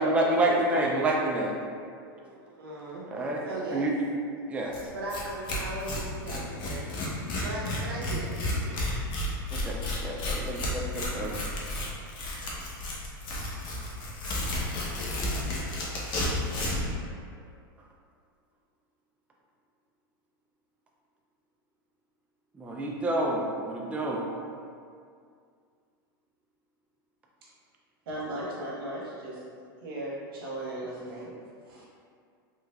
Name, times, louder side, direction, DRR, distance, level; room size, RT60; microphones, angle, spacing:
voice 1, 0.0-1.6 3.1-3.4 3.7-4.0 4.5-4.8 9.5-11.3 22.6-24.2, right 1 dB, 10° right, -1 dB, 0.3 m, -28 dB
voice 2, 1.9-3.1 3.4-3.9 4.7-6.9 7.4-8.8, right 1 dB, 90° right, -5 dB, 0.5 m, -38 dB
Tearing, 4.7-4.8 5.1-5.2 5.5-16.9, left 1 dB, 40° left, 0.7 m, -32 dB
voice 3, 28.1-29.4 29.8-31.3 31.7-31.9, right 1 dB, 70° right, -6 dB, 1.1 m, -36 dB
3.3 x 3.1 x 2.3 m, 2.2 s
hypercardioid pair, 110°, 12 cm